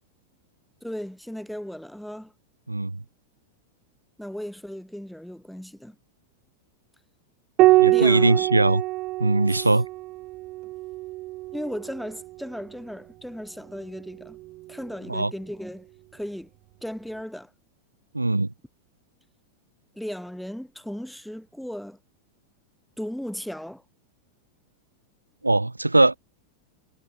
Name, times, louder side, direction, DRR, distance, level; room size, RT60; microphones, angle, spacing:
voice 1, 0.8-2.3 4.2-6.0 7.8-8.5 9.5-9.7 11.5-14.4 14.7-15.9 16.1-16.5 16.8-17.5 19.9-22.0 23.0-23.8, equal, ahead, 1.0 m, -36 dB
voice 2, 2.7-3.0 7.8-8.8 9.2-9.9 15.1-15.3 18.1-18.5 25.4-26.2, right 2 dB, 85° right, 0.7 m, -20 dB
Piano, 7.6-12.4 14.1-14.9, right 19 dB, 40° right, 0.8 m, -24 dB
figure-of-eight pair, 90°, 0 cm